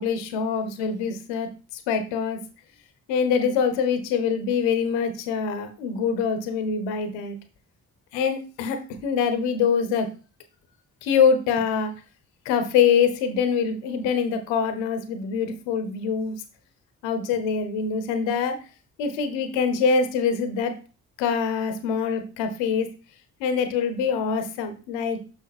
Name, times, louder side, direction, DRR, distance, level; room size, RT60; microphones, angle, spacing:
voice 1, 0.0-2.4 3.1-7.4 8.1-10.1 11.0-11.9 12.4-16.3 17.0-18.6 19.0-20.7 21.2-22.9 23.4-25.2, left 6 dB, 85° left, 9 dB, 1.0 m, -24 dB
6.1 x 5.8 x 4.1 m, 0.35 s
hypercardioid pair, 40°, 44 cm